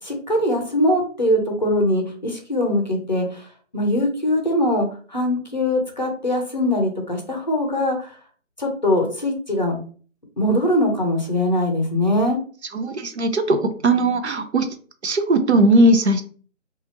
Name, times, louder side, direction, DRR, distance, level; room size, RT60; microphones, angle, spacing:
voice 1, 0.0-8.2 8.6-9.8 10.4-12.4, left 1 dB, 35° left, 2 dB, 0.6 m, -22 dB
voice 2, 12.7-14.7 15.0-16.2, right 1 dB, 60° right, 9 dB, 0.5 m, -18 dB
2.8 x 2.4 x 2.8 m, 0.42 s
figure-of-eight pair, 170°, 37 cm